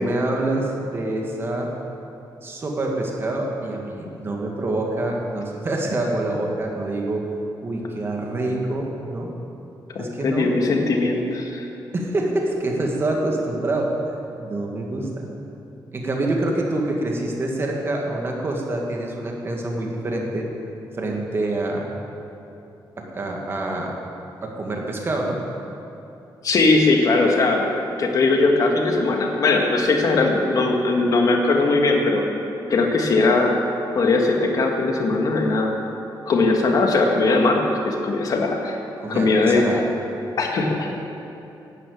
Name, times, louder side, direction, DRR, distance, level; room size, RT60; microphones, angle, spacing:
voice 1, 0.0-1.7 2.4-7.3 7.6-9.3 10.0-10.5 11.9-14.1 14.4-15.3 15.9-20.5 21.0-21.9 23.0-24.0 24.4-25.4 39.0-39.9, right 2 dB, 30° right, 0 dB, 1.9 m, -26 dB
voice 2, 9.9-11.7 26.4-27.7 28.0-32.2 32.7-33.5 33.9-35.7 36.3-38.8 39.1-39.7 40.4-41.0, left 3 dB, 45° left, 2 dB, 1.7 m, -19 dB
12.0 x 10.5 x 8.4 m, 2.9 s
wide cardioid pair, 180°, 8 cm